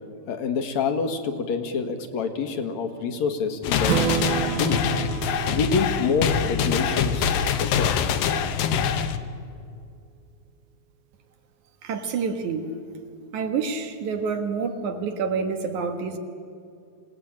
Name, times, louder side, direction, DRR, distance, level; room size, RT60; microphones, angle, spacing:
voice 1, 0.3-4.0 4.5-4.8 5.5-8.0, left 5 dB, 60° left, 7 dB, 2.6 m, -27 dB
sound 1, 3.6-9.2, left 7 dB, 75° left, 2.7 m, -24 dB
Strum, 3.8-7.8, right 10 dB, 85° right, 2.6 m, -30 dB
voice 2, 11.8-12.8 13.3-16.2, right 5 dB, 60° right, 6 dB, 2.8 m, -28 dB
27.0 x 18.5 x 8.8 m, 2.4 s
omnidirectional pair, 4.1 m